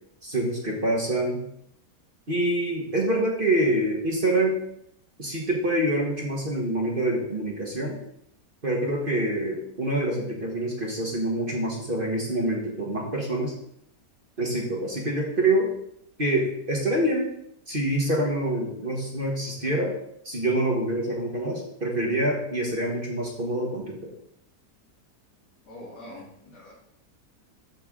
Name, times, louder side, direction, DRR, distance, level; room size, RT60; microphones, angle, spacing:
voice 1, 0.2-1.4 2.3-4.6 5.2-8.0 8.6-13.5 14.4-15.7 16.2-17.3 17.7-19.9 20.2-24.1, right 1 dB, 35° right, -1 dB, 1.5 m, -26 dB
voice 2, 25.7-26.7, left 1 dB, 75° left, -5 dB, 3.7 m, -43 dB
13.0 x 4.6 x 3.7 m, 0.73 s
omnidirectional pair, 1.8 m